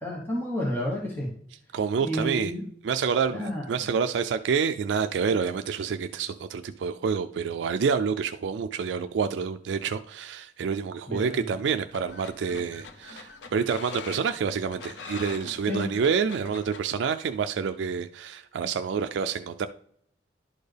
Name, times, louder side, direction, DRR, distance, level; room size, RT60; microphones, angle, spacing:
voice 1, 0.0-1.3 2.0-2.6 3.3-3.9 11.1-11.5 15.6-15.9, left 1 dB, 10° left, -4 dB, 1.1 m, -31 dB
voice 2, 1.7-2.5 2.8-19.7, right 6 dB, 75° right, 9 dB, 0.3 m, -28 dB
sound 1, 11.6-16.8, left 4 dB, 75° left, 0.7 m, -43 dB
11.0 x 4.3 x 3.3 m, 0.65 s
head